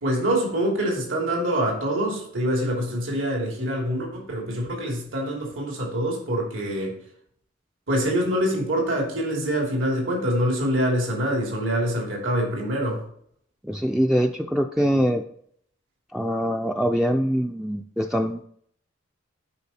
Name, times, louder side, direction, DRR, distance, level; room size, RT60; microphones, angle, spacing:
voice 1, 0.0-7.0 7.9-13.0, equal, 80° right, -1 dB, 2.9 m, -25 dB
voice 2, 13.6-15.2 16.1-18.5, equal, ahead, 3 dB, 0.3 m, -23 dB
10.5 x 5.2 x 4.2 m, 0.65 s
head